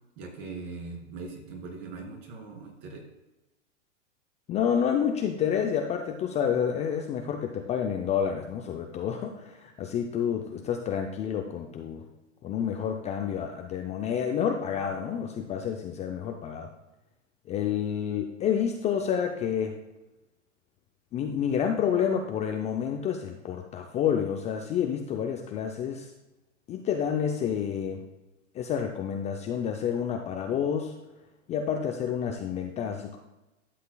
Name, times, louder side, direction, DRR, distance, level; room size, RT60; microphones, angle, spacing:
voice 1, 0.2-3.0, right 4 dB, 45° right, 1 dB, 2.7 m, -40 dB
voice 2, 4.5-12.0 12.4-16.7 17.5-19.7 21.1-26.1 26.7-28.0 28.5-30.9 31.5-33.2, left 8 dB, 20° left, 3 dB, 0.5 m, -29 dB
11.5 x 7.5 x 2.3 m, 1.0 s
hypercardioid pair, 115°, 37 cm